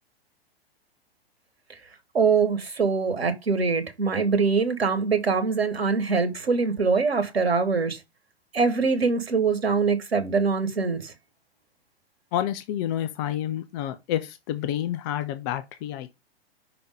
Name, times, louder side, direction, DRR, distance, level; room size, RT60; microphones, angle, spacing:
voice 1, 2.1-8.0 8.5-11.1, right 5 dB, 70° right, 1.3 m, -23 dB
voice 2, 12.3-16.1, left 11 dB, 25° left, 0.4 m, -29 dB
5.7 x 3.6 x 5.1 m
figure-of-eight pair, 105°, 31 cm